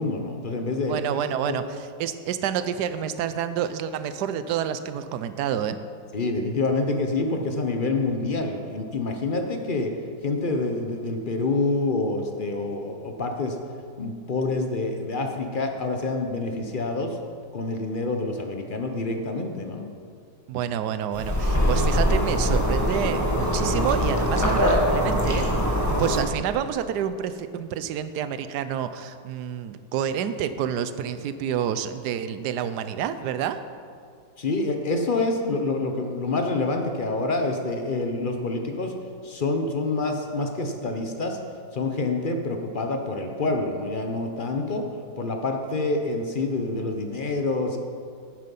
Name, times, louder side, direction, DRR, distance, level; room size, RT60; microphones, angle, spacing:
voice 1, 0.0-1.0 1.5-1.6 6.1-9.9 10.2-13.6 14.0-17.2 17.5-19.9 34.4-39.0 39.2-41.4 41.7-44.9 45.2-47.8, left 3 dB, 45° left, 4 dB, 0.7 m, -27 dB
voice 2, 0.9-1.6 2.0-5.8 20.5-25.5 25.9-33.6, right 9 dB, 70° right, 11 dB, 1.1 m, -28 dB
sound 1, 21.1-26.2, equal, 10° left, 1.1 m, -22 dB
10.0 x 9.6 x 5.4 m, 2.2 s
omnidirectional pair, 1.9 m